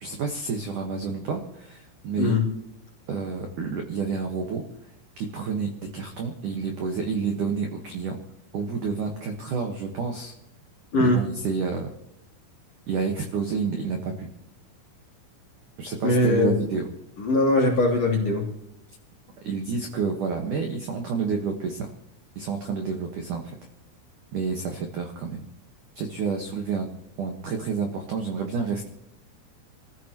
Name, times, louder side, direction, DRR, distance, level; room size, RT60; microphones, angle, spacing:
voice 1, 0.0-2.4 3.1-4.6 5.2-8.2 8.5-10.3 11.0-11.9 12.9-14.3 15.8-16.9 19.4-21.9 22.4-23.6 24.3-25.4 26.0-26.9 27.2-28.9, right 5 dB, 75° right, 3 dB, 1.8 m, -29 dB
voice 2, 16.0-16.6 17.2-18.5, left 2 dB, 35° left, 1 dB, 3.7 m, -21 dB
27.5 x 14.5 x 3.0 m, 0.80 s
omnidirectional pair, 6.0 m